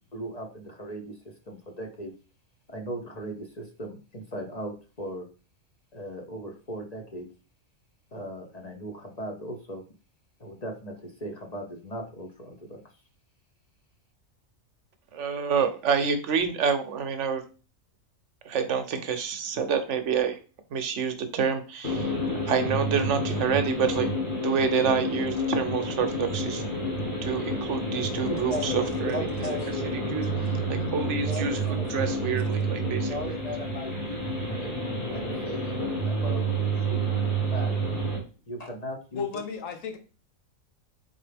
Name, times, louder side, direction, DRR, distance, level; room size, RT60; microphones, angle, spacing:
voice 1, 0.1-1.2 1.5-2.1 2.7-5.3 5.9-7.3 8.1-9.8 10.4-12.8 28.3-28.8 29.1-30.3 31.3-31.9 32.3-32.6 33.1-34.7 35.1-37.7 38.5-39.3, equal, 40° left, 0.7 m, -37 dB
voice 2, 15.1-17.4 18.4-20.4 20.7-22.1 22.5-24.1 24.4-26.6 27.2-29.5 29.9-30.3 30.7-33.1, right 6 dB, 70° right, 0.9 m, -28 dB
sound 1, 21.8-38.2, right 1 dB, 55° left, 2.0 m, -29 dB
voice 3, 39.1-40.0, left 6 dB, 75° left, 1.1 m, -33 dB
4.0 x 4.0 x 3.3 m
omnidirectional pair, 1.4 m